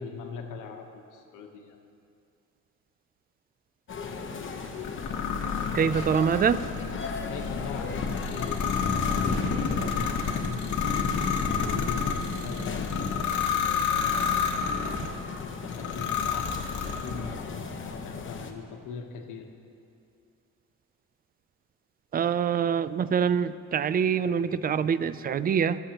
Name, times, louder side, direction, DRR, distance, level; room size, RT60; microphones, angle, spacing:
voice 1, 0.0-1.8 7.3-8.6 9.0-12.2 12.4-13.3 14.0-14.9 15.4-19.5, left 5 dB, 90° left, 3 dB, 1.1 m, -41 dB
sound 1, 3.9-18.5, left 5 dB, 40° left, 1.0 m, -37 dB
sound 2, 4.8-15.1 15.7-17.4, left 6 dB, 70° left, 1.2 m, -29 dB
voice 2, 5.7-6.6 22.1-25.8, right 7 dB, 30° right, 15 dB, 0.4 m, -25 dB
19.0 x 7.0 x 2.9 m, 2.5 s
cardioid pair, 90°, 30 cm